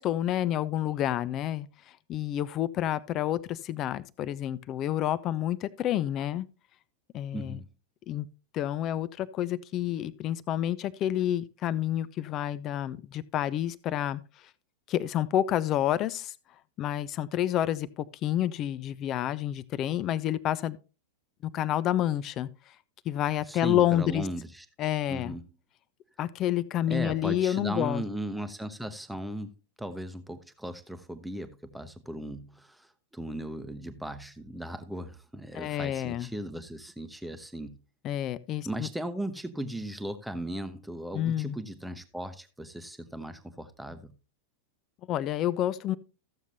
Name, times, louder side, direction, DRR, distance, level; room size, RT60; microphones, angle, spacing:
voice 1, 0.0-1.7 2.1-6.5 7.1-7.6 8.1-8.3 8.5-14.2 14.9-16.3 16.8-20.8 21.4-22.5 23.1-24.3 24.8-25.3 26.2-28.0 35.5-36.3 38.0-38.9 41.1-41.5 45.1-46.0, left 12 dB, 35° left, 0.5 m, -29 dB
voice 2, 7.3-7.6 23.5-24.7 25.1-25.4 26.9-37.8 38.6-44.1, right 1 dB, ahead, 0.9 m, -37 dB
14.5 x 7.2 x 2.7 m
figure-of-eight pair, 90°, 0 cm